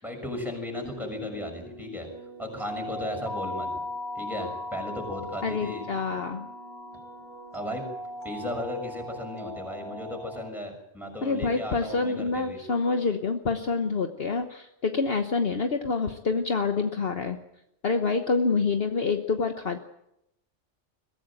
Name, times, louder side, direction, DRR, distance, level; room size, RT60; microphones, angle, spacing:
voice 1, 0.0-2.1 2.4-3.7 4.2-6.0 7.5-7.8 8.2-12.6, left 1 dB, ahead, 2 dB, 6.6 m, -35 dB
sound 1, 0.8-10.5, left 1 dB, 50° right, 3.8 m, -38 dB
voice 2, 5.4-6.5 11.2-17.4 17.8-19.8, left 4 dB, 50° left, 6 dB, 1.3 m, -27 dB
22.5 x 16.0 x 9.0 m, 0.84 s
omnidirectional pair, 1.3 m